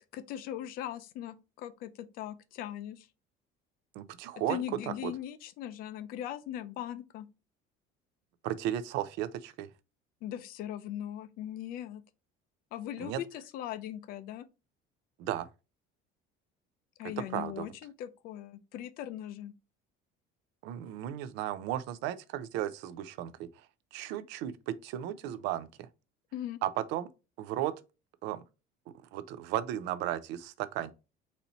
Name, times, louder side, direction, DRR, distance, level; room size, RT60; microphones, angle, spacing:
voice 1, 0.1-3.1 4.5-7.3 10.2-12.0 12.7-14.5 17.0-19.5 26.3-26.6, left 11 dB, 50° left, 0.4 m, -39 dB
voice 2, 4.0-5.1 8.4-9.7 13.0-13.2 15.2-15.5 17.3-17.7 20.6-23.5 23.9-25.9 26.6-27.1 27.4-27.7 28.2-28.4 29.1-30.9, right 12 dB, 65° right, 0.5 m, -35 dB
4.2 x 2.8 x 4.1 m
cardioid pair, 180°, 19 cm